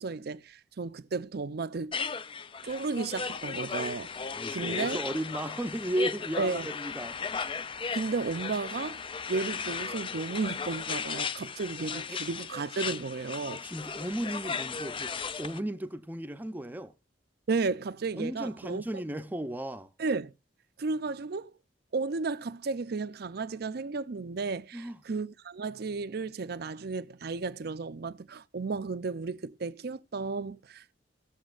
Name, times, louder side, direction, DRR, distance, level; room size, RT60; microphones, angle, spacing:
voice 1, 0.0-1.9 2.6-4.1 4.5-5.0 6.4-6.7 7.9-9.0 9.3-13.6 17.5-18.8 20.0-20.3 20.8-21.5 21.9-30.9, right 4 dB, 60° right, 0.5 m, -33 dB
sound 1, 1.9-15.6, left 5 dB, 30° left, 0.4 m, -36 dB
voice 2, 4.4-7.2 12.1-12.2 13.6-16.9 18.2-19.9 24.7-25.0, right 1 dB, 10° right, 0.6 m, -35 dB
18.0 x 7.2 x 2.5 m
head